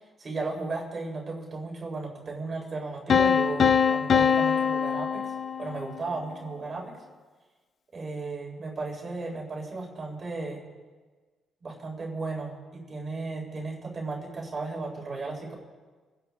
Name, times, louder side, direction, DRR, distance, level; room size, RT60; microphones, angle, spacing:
voice 1, 0.2-5.3 5.6-6.9 7.9-10.6 11.6-15.5, right 3 dB, 40° right, 0 dB, 4.0 m, -35 dB
sound 1, 3.1-6.0, left 7 dB, 55° left, 0.6 m, -23 dB
27.5 x 11.0 x 3.6 m, 1.4 s
cardioid pair, 90°, 0 cm